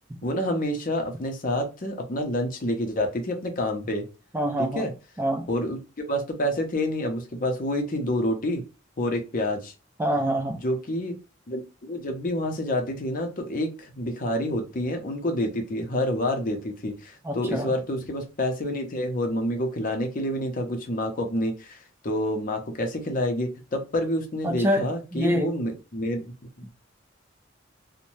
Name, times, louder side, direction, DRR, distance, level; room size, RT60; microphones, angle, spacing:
voice 1, 0.2-4.1 4.6-4.9 5.5-5.8 6.1-8.6 9.0-9.7 10.6-11.2 11.5-26.7, left 1 dB, 45° left, 0.6 m, -28 dB
voice 2, 4.3-4.9 5.2-5.5 10.0-10.6 17.2-17.7 24.4-24.8 25.1-25.5, equal, 10° right, 0.3 m, -25 dB
2.6 x 2.1 x 3.0 m
head